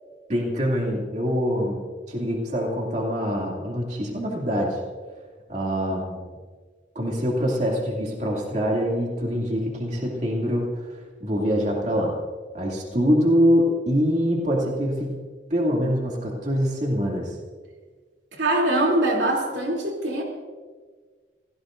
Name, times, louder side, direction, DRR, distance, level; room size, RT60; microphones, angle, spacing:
voice 1, 0.3-1.8 2.1-4.8 5.5-6.3 6.9-10.9 11.2-12.1 12.5-15.2 15.5-17.3, equal, 40° right, -2 dB, 2.5 m, -24 dB
voice 2, 18.3-20.2, right 1 dB, 80° right, 0 dB, 3.1 m, -23 dB
26.5 x 17.0 x 2.6 m, 1.5 s
head